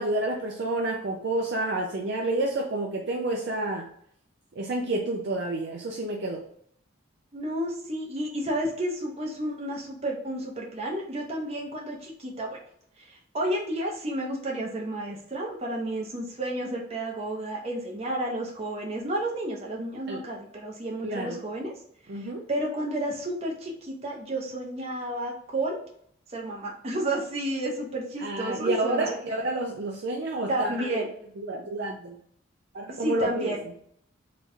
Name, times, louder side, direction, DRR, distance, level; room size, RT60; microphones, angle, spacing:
voice 1, 0.0-3.9 4.6-6.4 20.1-20.2 21.0-21.4 22.1-22.5 28.2-31.1 31.4-32.2 32.7-33.5, right 2 dB, 55° right, 0 dB, 0.4 m, -29 dB
voice 2, 7.3-12.6 13.0-21.7 22.1-25.8 26.3-29.1 30.5-31.1 32.9-33.6, right 1 dB, 30° right, -1 dB, 0.8 m, -31 dB
3.0 x 2.4 x 4.2 m, 0.65 s
head